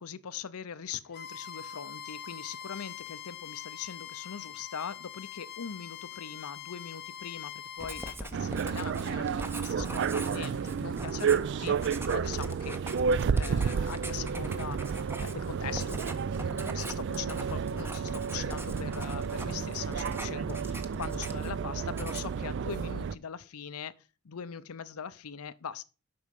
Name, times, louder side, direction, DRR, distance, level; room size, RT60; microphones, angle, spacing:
voice 1, 0.0-12.8 13.3-16.0 16.4-23.9 24.2-25.8, left 7 dB, 85° left, 0.6 m, -41 dB
Bowed string instrument, 1.1-8.2, left 10 dB, 45° left, 0.7 m, -43 dB
Writing, 7.8-21.6 21.9-22.4, right 1 dB, 10° right, 0.7 m, -42 dB
sound 1, 8.3-23.2, right 6 dB, 55° right, 0.3 m, -31 dB
7.9 x 5.5 x 5.2 m
head